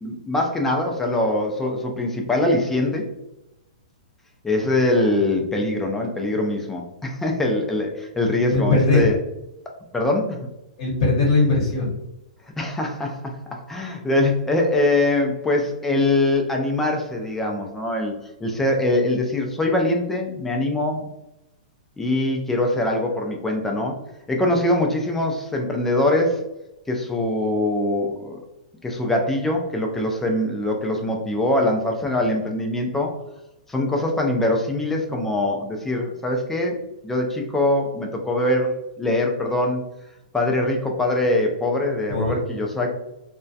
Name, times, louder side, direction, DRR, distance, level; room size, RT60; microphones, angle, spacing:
voice 1, 0.0-3.1 4.4-9.2 9.9-10.4 12.6-18.1 18.4-21.1 22.0-24.0 24.3-26.4 26.9-28.4 28.8-33.2 33.7-36.8 37.0-39.8 40.3-42.9, left 1 dB, 5° left, 1 dB, 0.3 m, -23 dB
voice 2, 8.5-9.1 10.8-11.9 42.1-42.4, left 3 dB, 50° left, -4 dB, 0.8 m, -19 dB
2.2 x 2.1 x 2.6 m, 0.90 s
hypercardioid pair, 150°, 4 cm